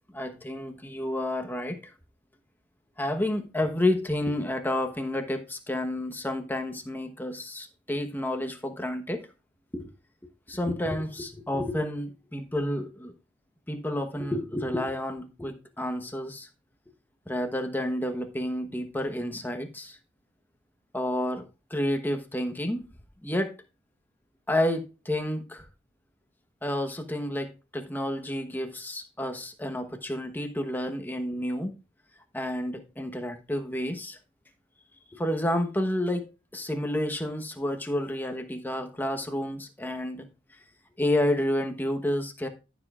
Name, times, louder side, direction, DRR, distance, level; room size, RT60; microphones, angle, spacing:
voice 1, 0.1-1.9 3.0-9.3 9.7-9.9 10.5-13.1 13.7-16.5 17.3-20.0 20.9-22.9 23.2-23.6 24.5-25.7 26.6-31.8 32.3-34.2 35.1-40.3 41.0-42.5, left 1 dB, 10° left, 1.1 m, -30 dB
14.0 x 7.1 x 2.5 m
head